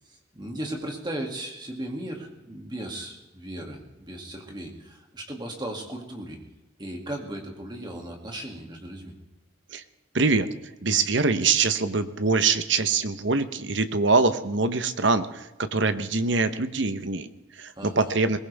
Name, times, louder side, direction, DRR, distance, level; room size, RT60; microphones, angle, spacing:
voice 1, 0.1-6.4 6.8-9.1 17.8-18.1, right 1 dB, 20° right, 1 dB, 2.4 m, -36 dB
voice 2, 10.1-10.5 10.8-18.4, right 4 dB, 60° right, 11 dB, 1.0 m, -24 dB
21.5 x 18.5 x 3.5 m, 1.0 s
head